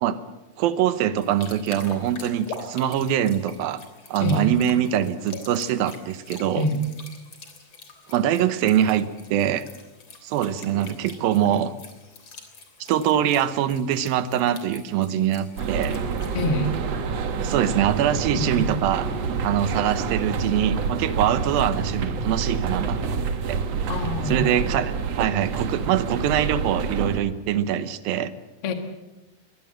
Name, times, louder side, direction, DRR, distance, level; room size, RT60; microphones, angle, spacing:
voice 1, 0.6-3.8 4.1-6.7 8.1-9.7 10.2-11.7 12.8-16.0 17.4-19.1 19.4-23.0 23.5-23.6 24.3-28.3, right 10 dB, 70° right, 13 dB, 2.6 m, -23 dB
sound 1, 1.2-16.4, left 3 dB, 35° left, 3.6 m, -44 dB
voice 2, 4.2-4.6 6.6-6.9 16.3-16.8 18.3-18.7 23.9-24.6 28.6-28.7, left 1 dB, 55° left, 5 dB, 1.7 m, -25 dB
sound 2, 15.6-27.2, right 5 dB, 55° right, 1.9 m, -27 dB
23.5 x 19.5 x 7.7 m, 1.1 s
omnidirectional pair, 4.7 m